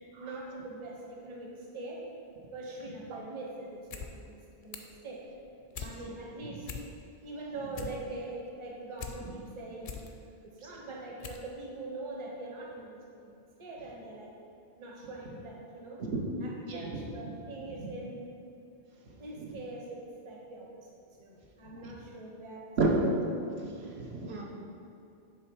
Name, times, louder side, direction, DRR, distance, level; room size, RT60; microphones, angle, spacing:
voice 1, 0.2-2.1 2.5-4.4 4.6-5.3 5.8-6.7 7.2-10.1 10.4-14.3 14.8-16.0 16.4-18.2 19.2-22.8, right 2 dB, 30° right, -2 dB, 0.8 m, -43 dB
sound 1, 3.7-4.1 4.4-5.0 5.4-5.9 6.3-6.4 6.6-7.2 7.5-9.2 9.6-10.1 10.6-10.7 11.2-11.5 11.8-11.9, left 6 dB, 60° left, 0.7 m, -42 dB
voice 2, 16.7-17.0 19.4-19.5 21.7-21.9 22.8-23.0 23.6-24.4, right 3 dB, 80° right, -3 dB, 1.2 m, -31 dB
7.3 x 3.3 x 4.6 m, 2.6 s
omnidirectional pair, 1.0 m